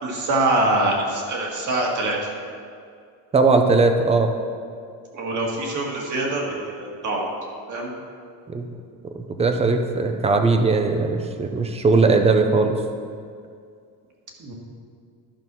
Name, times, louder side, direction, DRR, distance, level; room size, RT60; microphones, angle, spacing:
voice 1, 0.0-2.2 5.1-7.3 7.7-7.9 14.4-14.5, right 2 dB, 45° right, -1 dB, 1.9 m, -24 dB
voice 2, 3.3-4.3 8.5-8.7 9.1-12.8, right 3 dB, 15° right, 6 dB, 0.5 m, -19 dB
11.5 x 5.4 x 6.1 m, 2.3 s
cardioid pair, 160°, 42 cm